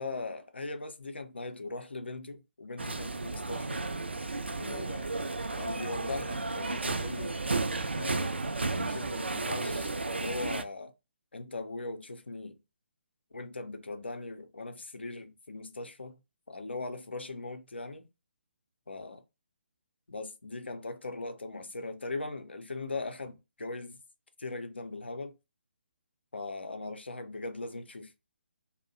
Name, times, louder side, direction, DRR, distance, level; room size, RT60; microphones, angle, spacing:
voice 1, 0.0-3.8 4.6-5.2 5.5-7.4 7.9-10.9 11.3-12.6 13.3-16.2 16.5-18.1 18.9-19.2 20.1-24.0 24.4-25.3 26.3-28.1, left 3 dB, 70° left, 0.5 m, -39 dB
sound 1, 2.8-10.6, right 3 dB, 75° right, 0.4 m, -33 dB
2.5 x 2.0 x 2.6 m
figure-of-eight pair, 140°, 6 cm